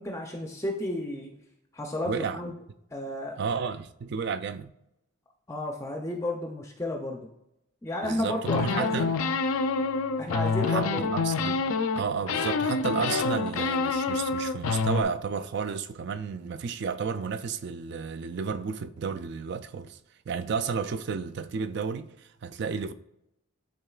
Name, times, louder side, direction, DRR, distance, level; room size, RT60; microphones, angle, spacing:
voice 1, 0.0-1.3 1.7-2.5 2.9-3.4 5.5-7.3 7.8-9.1 10.2-11.1, left 1 dB, 15° left, 0.4 m, -32 dB
voice 2, 2.1-2.4 3.4-4.7 8.0-9.1 10.7-10.9 11.1-11.6 11.9-20.0 20.3-22.9, right 5 dB, 50° right, 0.3 m, -32 dB
sound 1, 8.5-12.0 12.3-15.0, left 4 dB, 75° left, 0.4 m, -27 dB
11.0 x 3.7 x 2.3 m
head